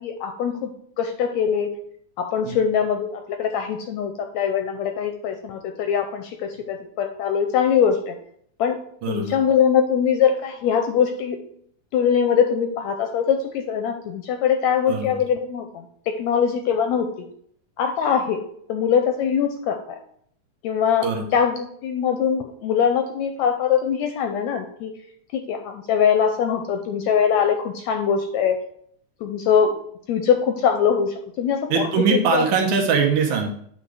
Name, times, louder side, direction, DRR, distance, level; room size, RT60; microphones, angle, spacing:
voice 1, 0.0-0.7 1.0-1.7 2.2-8.1 8.6-8.8 9.1-11.4 11.9-17.3 17.8-18.4 18.7-19.8 20.6-24.9 25.3-28.6 29.2-29.8 30.1-32.5, left 7 dB, 80° left, 5 dB, 1.7 m, -22 dB
voice 2, 9.0-9.4 14.9-15.2 21.0-21.2 31.7-33.6, right 5 dB, 70° right, 3 dB, 2.3 m, -21 dB
8.8 x 3.9 x 4.7 m, 0.65 s
omnidirectional pair, 3.7 m